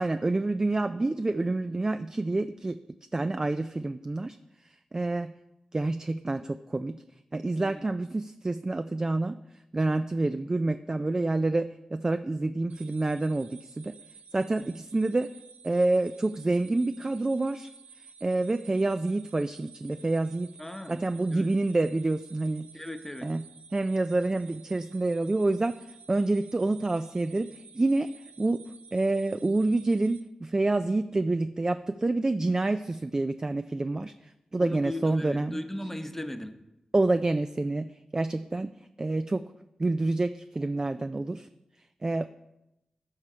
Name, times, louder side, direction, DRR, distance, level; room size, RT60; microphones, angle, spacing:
voice 1, 0.0-2.8 3.1-4.4 4.6-5.4 5.7-7.0 7.3-14.0 14.3-15.3 15.6-17.7 18.0-20.5 20.9-22.7 23.2-23.5 23.7-28.6 28.9-35.6 36.9-39.5 39.8-41.5 42.0-42.2, right 2 dB, 30° right, 10 dB, 0.3 m, -28 dB
sound 1, 12.7-30.2, right 6 dB, 80° right, 0.6 m, -52 dB
voice 2, 20.6-21.0 21.3-21.5 22.7-23.3 34.6-36.5, left 1 dB, 15° left, 7 dB, 0.9 m, -37 dB
13.0 x 4.7 x 4.4 m, 0.91 s
cardioid pair, 55°, 2 cm